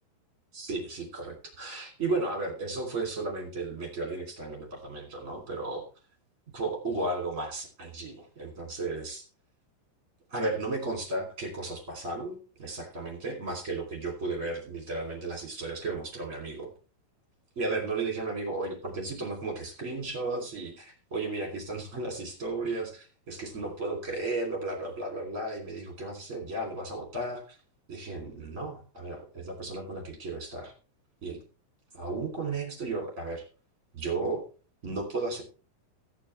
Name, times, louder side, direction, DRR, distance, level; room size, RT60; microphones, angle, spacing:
voice 1, 0.5-5.8 6.5-9.2 10.3-16.7 17.5-27.6 27.9-30.7 31.2-31.4 31.9-33.4 33.9-34.4 34.8-35.4, right 3 dB, 20° right, 1 dB, 2.5 m, -34 dB
15.0 x 9.7 x 3.3 m, 0.35 s
omnidirectional pair, 5.4 m